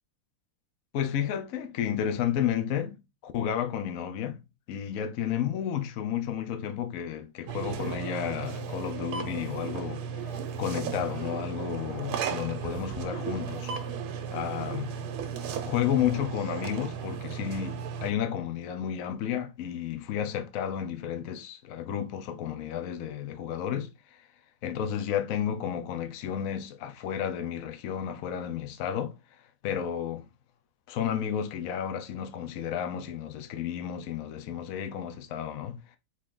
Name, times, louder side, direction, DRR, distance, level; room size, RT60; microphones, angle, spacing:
voice 1, 0.9-4.4 4.7-10.0 10.6-13.7 14.3-14.9 15.6-23.9 24.6-29.1 29.6-30.2 30.9-35.8, left 9 dB, 80° left, 0.7 m, -32 dB
sound 1, 7.5-18.1, right 7 dB, 85° right, 1.6 m, -35 dB
4.2 x 3.2 x 3.6 m
omnidirectional pair, 2.4 m